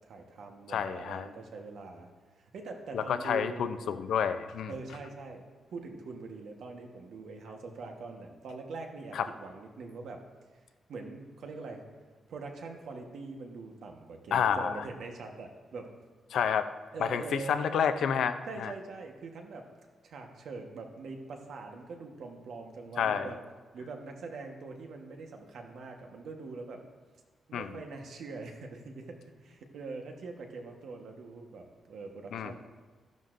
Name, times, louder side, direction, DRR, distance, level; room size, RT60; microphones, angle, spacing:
voice 1, 0.0-2.1 2.4-3.8 4.7-5.4 5.7-10.2 10.9-11.8 12.3-15.9 16.9-17.7 18.5-19.7 20.0-23.4 23.7-26.8 27.5-32.6, right 3 dB, 60° right, 3 dB, 1.2 m, -43 dB
voice 2, 0.7-1.3 2.9-4.7 9.1-9.3 14.3-14.8 16.3-16.7 17.0-18.7 23.0-23.3 27.5-27.7 32.3-32.5, left 7 dB, 70° left, 10 dB, 0.5 m, -29 dB
12.5 x 10.5 x 2.6 m, 1.4 s
wide cardioid pair, 175°, 0 cm